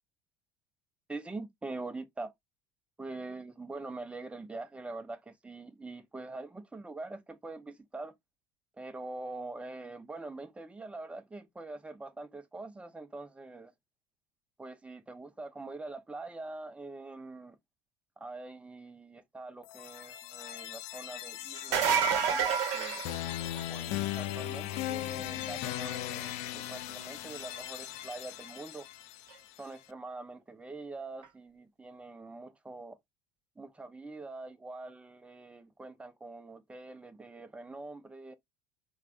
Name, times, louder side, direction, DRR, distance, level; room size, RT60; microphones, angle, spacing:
voice 1, 1.1-2.3 3.0-8.1 8.8-13.7 14.6-17.6 18.2-23.0 23.7-28.8 29.6-33.0 33.6-38.4, right 2 dB, 10° right, 0.6 m, -44 dB
sound 1, 19.6-29.6, left 14 dB, 65° left, 0.4 m, -38 dB
sound 2, 21.6-23.8 29.3-29.4 31.2-31.3, right 7 dB, 65° right, 0.8 m, -28 dB
3.3 x 2.3 x 2.4 m
hypercardioid pair, 85°, 12 cm